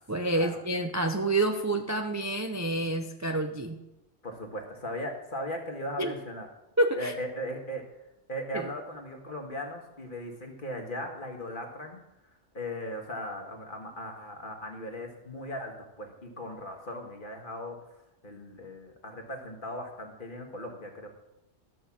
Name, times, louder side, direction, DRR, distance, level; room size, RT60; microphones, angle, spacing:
voice 1, 0.1-3.8 6.0-6.1 6.8-7.1 8.5-8.7, right 2 dB, 20° right, 4 dB, 0.5 m, -28 dB
voice 2, 4.2-6.5 6.9-7.8 8.3-12.0 12.5-17.8 18.2-21.1, equal, 45° left, 3 dB, 1.8 m, -38 dB
12.5 x 5.5 x 7.3 m, 0.93 s
omnidirectional pair, 1.3 m